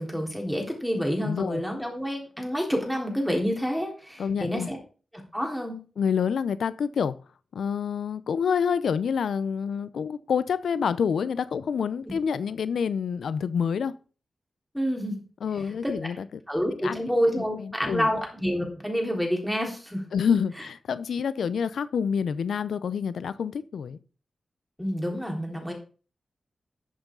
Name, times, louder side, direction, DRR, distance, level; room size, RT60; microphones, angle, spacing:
voice 1, 0.0-4.8 5.3-5.8 14.7-15.2 15.8-16.0 16.5-20.0 24.8-25.7, equal, ahead, 3.9 m, -28 dB
voice 2, 1.2-1.6 4.2-4.7 6.0-7.2 7.5-13.9 15.4-16.3 16.8-17.1 17.4-18.1 20.1-24.0, left 7 dB, 90° left, 0.6 m, -27 dB
12.0 x 7.2 x 3.9 m
cardioid pair, 65°, 0 cm